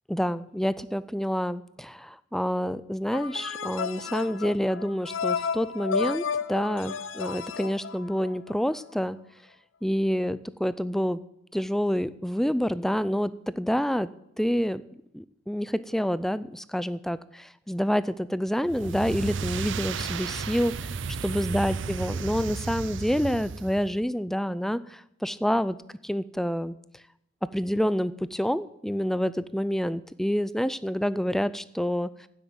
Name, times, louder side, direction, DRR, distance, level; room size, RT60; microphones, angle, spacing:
voice 1, 0.1-9.2 9.8-11.2 11.5-14.1 14.4-14.8 15.1-25.8 26.0-26.8 27.5-32.1, equal, ahead, 16 dB, 0.3 m, -28 dB
sound 1, 3.1-8.5, left 6 dB, 75° left, 0.7 m, -32 dB
sound 2, 18.7-24.0, right 5 dB, 65° right, 0.5 m, -33 dB
9.5 x 8.1 x 9.4 m, 0.80 s
head